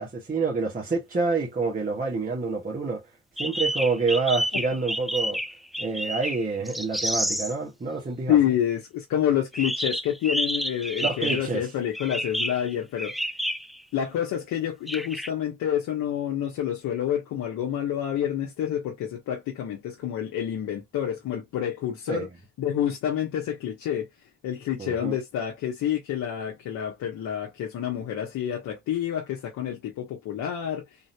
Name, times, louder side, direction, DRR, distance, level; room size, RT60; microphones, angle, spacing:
voice 1, 0.0-3.1 3.4-5.4 5.8-8.6 11.0-11.7 22.1-22.3 24.8-25.2, right 4 dB, 30° right, 1.5 m, -27 dB
sound 1, 3.4-7.5 9.5-11.6 11.9-13.8 14.9-15.3, equal, ahead, 0.4 m, -29 dB
voice 2, 8.3-13.1 13.9-22.3 22.6-24.1 24.4-30.8, left 10 dB, 75° left, 1.0 m, -28 dB
3.7 x 2.7 x 2.2 m
supercardioid pair, 55°, 30 cm